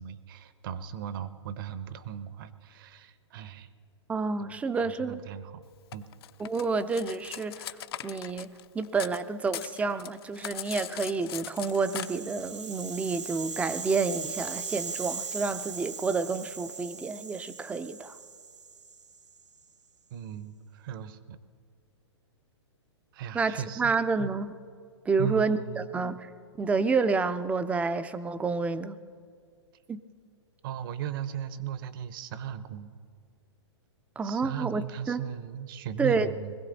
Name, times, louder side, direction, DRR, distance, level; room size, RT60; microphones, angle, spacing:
voice 1, 0.0-3.7 4.4-5.6 5.9-6.1 20.1-21.4 23.1-24.3 25.2-25.9 30.6-32.9 34.2-36.6, right 9 dB, 50° right, 14 dB, 0.8 m, -37 dB
voice 2, 4.1-5.2 6.4-7.8 8.0-18.2 23.3-24.5 25.1-26.3 26.6-29.0 29.9-30.0 34.2-35.2 36.0-36.3, right 4 dB, 10° right, 13 dB, 0.4 m, -29 dB
Cutlery silverware, 5.9-9.2 9.5-12.1, left 12 dB, 55° left, 0.6 m, -39 dB
Rattle (instrument), 11.4-19.6, right 5 dB, 90° right, 0.9 m, -39 dB
21.0 x 15.5 x 4.1 m, 2.2 s
hypercardioid pair, 125°, 15 cm